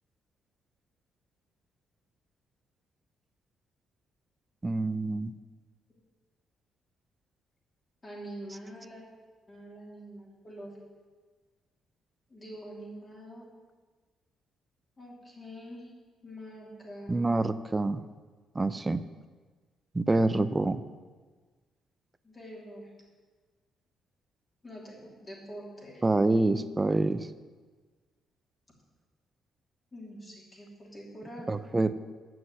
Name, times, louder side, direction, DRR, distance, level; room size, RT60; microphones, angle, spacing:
voice 1, 4.6-5.3 17.1-18.0 18.6-19.0 19.9-20.8 26.0-27.3 31.5-32.0, right 2 dB, 20° right, 13 dB, 0.4 m, -26 dB
voice 2, 8.0-9.0 9.5-10.7 12.3-13.5 15.0-15.9 16.2-17.3 22.2-22.9 24.6-26.0 29.9-31.5, equal, 25° left, -3 dB, 3.0 m, -45 dB
7.7 x 6.1 x 7.7 m, 1.4 s
cardioid pair, 90°, 0 cm